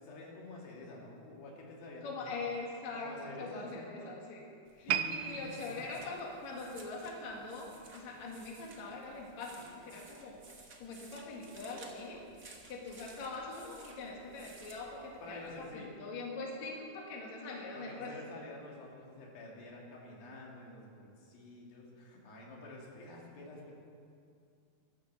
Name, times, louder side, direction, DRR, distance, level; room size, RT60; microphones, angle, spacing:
voice 1, 0.0-2.3 2.9-4.2 4.8-5.8 15.2-16.0 17.8-23.7, left 2 dB, 85° left, -2 dB, 4.2 m, -49 dB
voice 2, 2.0-4.5 4.7-12.2 12.7-18.1, left 3 dB, 55° left, -2 dB, 3.1 m, -43 dB
sound 1, 4.6-15.6, right 3 dB, 40° right, 1.2 m, -57 dB
sound 2, 4.9-8.2 8.5-8.8 9.4-9.5, right 10 dB, 85° right, 2.3 m, -39 dB
16.0 x 11.5 x 7.4 m, 2.4 s
omnidirectional pair, 4.1 m